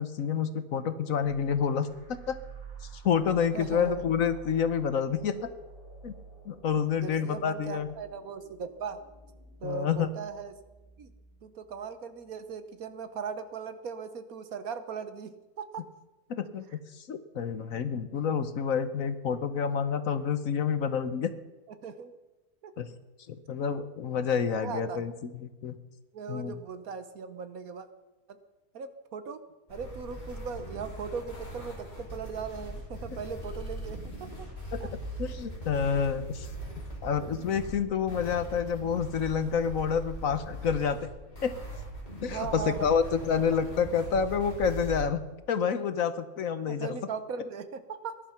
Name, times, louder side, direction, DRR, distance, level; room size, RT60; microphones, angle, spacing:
voice 1, 0.0-2.4 2.9-5.5 6.0-6.1 6.5-7.9 9.6-10.1 16.3-16.6 16.9-21.3 22.8-22.9 23.3-25.8 26.3-26.5 34.7-34.8 35.2-36.5 37.0-41.0 41.4-41.6 42.2-45.2 45.5-47.0, left 7 dB, 60° left, 11 dB, 1.2 m, -28 dB
sound 1, 1.2-12.6, right 3 dB, 20° right, 3.4 m, -50 dB
voice 2, 3.5-4.1 7.0-9.0 9.6-10.6 11.0-11.1 11.4-15.9 21.8-22.1 22.6-22.7 24.5-25.1 26.1-27.9 28.3-28.4 28.7-29.4 29.7-34.5 34.8-34.9 42.2-43.0 43.3-43.4 46.7-48.2, right 6 dB, 60° right, 10 dB, 1.4 m, -38 dB
sound 2, 29.7-45.0, right 1 dB, 25° left, 4.8 m, -40 dB
20.0 x 11.5 x 5.8 m, 1.1 s
omnidirectional pair, 1.8 m